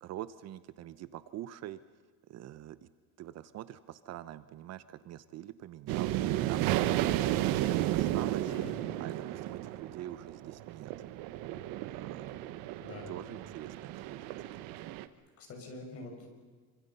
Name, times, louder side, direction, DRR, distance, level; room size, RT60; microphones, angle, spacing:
voice 1, 0.0-1.8 2.3-2.8 3.2-6.8 7.1-7.5 7.9-8.5 9.0-10.9 11.9-12.3 13.1-14.4, right 12 dB, 45° right, 14 dB, 0.8 m, -44 dB
sound 1, 5.9-15.1, right 14 dB, 70° right, 1.3 m, -33 dB
voice 2, 8.5-8.9 12.8-13.4 15.1-16.3, left 2 dB, 40° left, 3 dB, 6.0 m, -47 dB
26.5 x 25.0 x 5.6 m, 1.5 s
cardioid pair, 155°, 37 cm